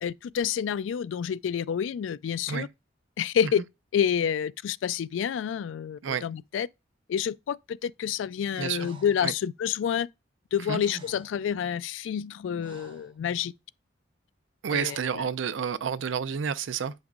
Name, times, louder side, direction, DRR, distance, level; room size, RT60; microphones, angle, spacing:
voice 1, 0.0-2.7 3.2-3.6 3.9-6.7 7.1-10.1 10.5-13.5 14.7-15.2, left 8 dB, 90° left, 0.3 m, -28 dB
voice 2, 8.6-8.9 9.2-9.3 10.7-10.8 14.6-16.9, right 7 dB, 85° right, 0.5 m, -30 dB
Breathing, 8.8-9.3 10.5-10.6 10.7-11.4 12.1-13.2 14.7-15.3, right 3 dB, 25° right, 1.0 m, -50 dB
8.6 x 5.3 x 2.4 m
head